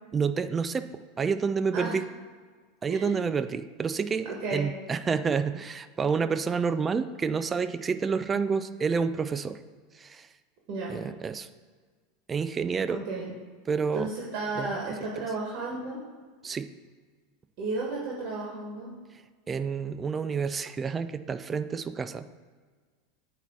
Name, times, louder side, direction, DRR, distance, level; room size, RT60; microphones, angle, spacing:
voice 1, 0.1-0.9 1.2-2.0 2.8-9.6 9.9-10.3 10.9-11.5 12.3-13.0 13.7-14.1 14.6-14.8 16.4-16.7 19.5-22.3, right 5 dB, 25° right, 12 dB, 0.4 m, -29 dB
voice 2, 2.9-3.2 4.2-4.6 10.7-10.9 12.9-13.3 13.9-16.0 16.4-16.6 17.6-18.9, right 3 dB, 50° right, -4 dB, 1.6 m, -33 dB
8.9 x 3.0 x 6.0 m, 1.5 s
figure-of-eight pair, 85°, 0 cm